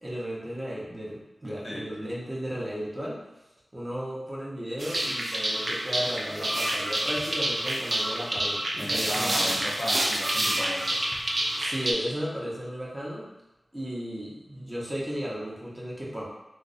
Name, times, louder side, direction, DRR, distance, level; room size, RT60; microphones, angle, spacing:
voice 1, 0.0-3.2 3.7-9.6 11.6-13.3 13.7-16.2, equal, 25° right, -5 dB, 0.7 m, -34 dB
sound 1, 4.8-11.9, right 1 dB, 55° right, 0.3 m, -28 dB
voice 2, 8.8-11.0, equal, 30° left, -5 dB, 0.6 m, -34 dB
2.4 x 2.0 x 2.5 m, 0.95 s
wide cardioid pair, 55°, 0 cm